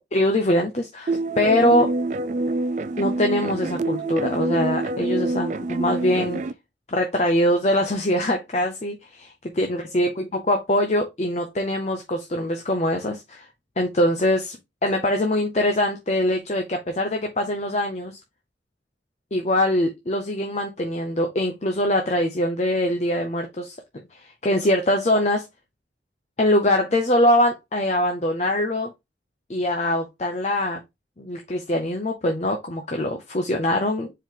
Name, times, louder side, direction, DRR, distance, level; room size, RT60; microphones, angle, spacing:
voice 1, 0.1-1.9 3.0-6.4 6.9-9.3 9.6-13.5 13.8-14.6 14.8-18.2 19.3-23.8 24.2-25.4 26.4-28.9 29.5-30.8 31.2-34.1, left 1 dB, 40° left, 0.7 m, -23 dB
sound 1, 1.1-6.5, right 2 dB, 40° right, 0.3 m, -26 dB
4.6 x 3.2 x 3.7 m
head